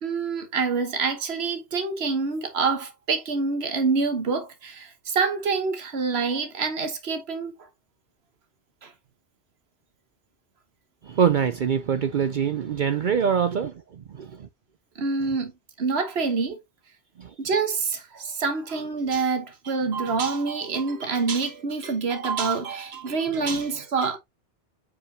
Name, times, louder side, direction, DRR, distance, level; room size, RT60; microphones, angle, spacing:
voice 1, 0.0-7.5 8.8-8.9 14.9-15.5 15.8-16.6 17.4-24.2, right 4 dB, 80° right, 1.5 m, -26 dB
voice 2, 11.0-14.5 17.2-17.3 23.5-23.6, right 7 dB, 55° right, 0.7 m, -24 dB
7.2 x 5.0 x 2.7 m
omnidirectional pair, 1.0 m